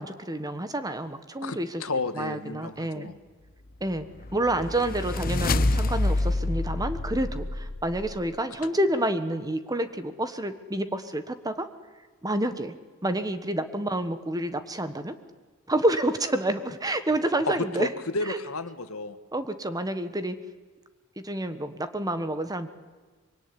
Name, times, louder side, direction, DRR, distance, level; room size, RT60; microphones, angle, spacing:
voice 1, 0.0-1.8 2.1-3.1 3.8-4.1 4.3-11.7 12.2-12.7 13.0-15.1 15.7-17.9 18.3-18.4 19.3-20.4 21.2-22.7, right 1 dB, 15° right, 10 dB, 1.4 m, -28 dB
voice 2, 1.4-3.1 17.4-19.2, left 3 dB, 70° left, 10 dB, 1.6 m, -32 dB
sound 1, 4.0-8.2, left 2 dB, 40° left, 1.0 m, -27 dB
25.0 x 23.0 x 9.9 m, 1.4 s
head